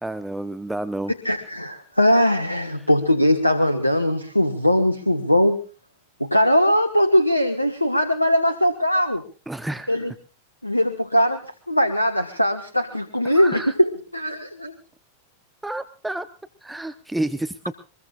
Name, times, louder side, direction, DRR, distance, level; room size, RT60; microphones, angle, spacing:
voice 1, 0.0-1.1 2.8-2.9 9.5-10.1 13.2-13.7 15.6-16.3 16.6-17.8, right 1 dB, 5° right, 11 dB, 0.9 m, -30 dB
voice 2, 1.2-5.6 6.2-9.2 9.9-10.1 10.6-14.7, equal, 85° left, 10 dB, 1.4 m, -20 dB
23.5 x 22.0 x 2.5 m, 0.37 s
figure-of-eight pair, 90°, 0 cm